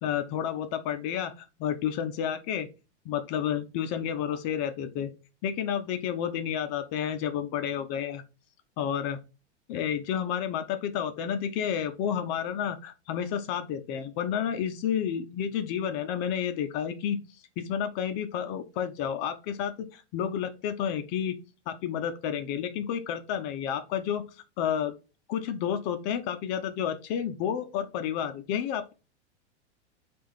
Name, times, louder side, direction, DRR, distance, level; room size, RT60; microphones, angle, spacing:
voice 1, 0.0-2.7 3.1-5.1 5.4-8.2 8.8-9.2 9.7-17.2 17.6-21.4 21.7-24.2 24.6-24.9 25.3-28.9, left 9 dB, 40° left, 8 dB, 0.5 m, -30 dB
3.6 x 2.4 x 3.1 m, 0.30 s
supercardioid pair, 130°, 35 cm